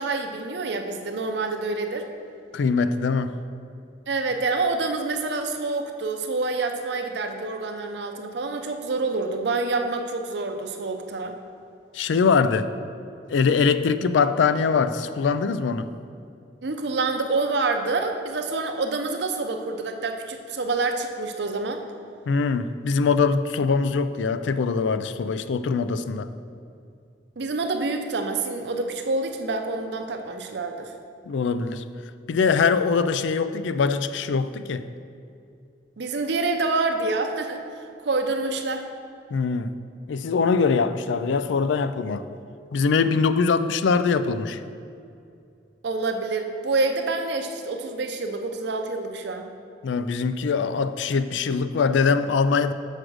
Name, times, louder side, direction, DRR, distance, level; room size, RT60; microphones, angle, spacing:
voice 1, 0.0-2.1 4.1-11.4 16.6-21.8 27.4-30.9 36.0-38.8 45.8-49.5, right 3 dB, 65° right, 5 dB, 0.6 m, -27 dB
voice 2, 2.5-3.3 11.9-12.7 13.3-15.9 22.3-26.3 31.3-31.8 32.3-34.9 39.3-39.7 40.1-42.3 42.7-44.6 49.8-52.7, left 5 dB, 80° left, 12 dB, 0.4 m, -22 dB
6.4 x 4.9 x 6.2 m, 2.5 s
head